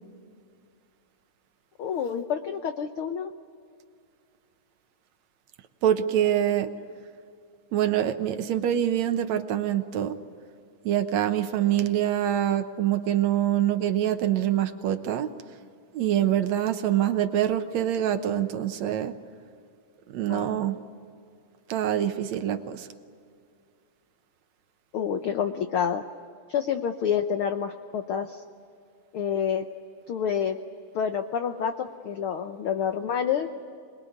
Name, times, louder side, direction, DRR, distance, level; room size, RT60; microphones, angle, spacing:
voice 1, 1.8-3.3 20.3-20.6 24.9-26.0 26.5-28.4 29.1-29.6 30.1-30.6 30.9-33.5, left 8 dB, 85° left, 7 dB, 1.2 m, -28 dB
voice 2, 5.8-6.7 7.7-10.2 10.8-15.3 15.9-19.1 20.1-20.8 21.7-22.9, right 11 dB, 70° right, 9 dB, 2.1 m, -25 dB
26.5 x 21.0 x 9.4 m, 2.3 s
omnidirectional pair, 3.7 m